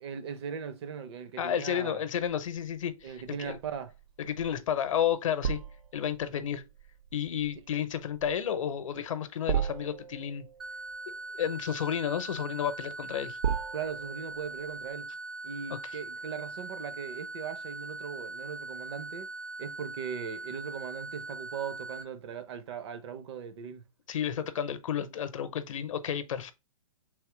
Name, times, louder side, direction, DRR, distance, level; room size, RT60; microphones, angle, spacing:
voice 1, 0.0-2.0 3.0-3.9 13.7-15.1 15.4-19.3 19.6-23.8, right 7 dB, 50° right, 0.7 m, -39 dB
voice 2, 1.4-3.6 4.2-5.6 5.9-6.6 7.1-10.5 11.4-13.4 24.1-26.5, left 9 dB, 65° left, 0.7 m, -31 dB
sound 1, 2.2-14.9, right 8 dB, 80° right, 0.4 m, -38 dB
sound 2, 10.6-22.0, right 3 dB, 5° right, 0.3 m, -41 dB
3.5 x 2.9 x 4.7 m
hypercardioid pair, 130°, 18 cm